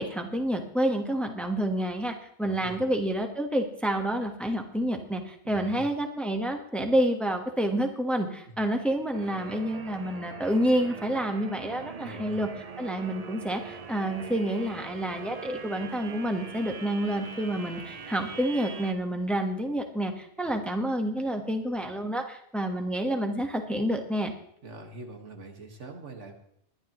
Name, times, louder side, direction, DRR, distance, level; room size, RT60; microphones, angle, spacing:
voice 1, 0.0-12.5 12.8-24.3, right 1 dB, ahead, 4 dB, 1.1 m, -29 dB
voice 2, 2.4-2.8 5.4-5.9 8.5-8.6 12.0-12.5 24.6-26.3, right 2 dB, 85° right, 3 dB, 2.0 m, -43 dB
sound 1, 9.1-18.9, right 5 dB, 35° right, 0.8 m, -42 dB
20.5 x 11.0 x 3.0 m, 0.70 s
omnidirectional pair, 1.2 m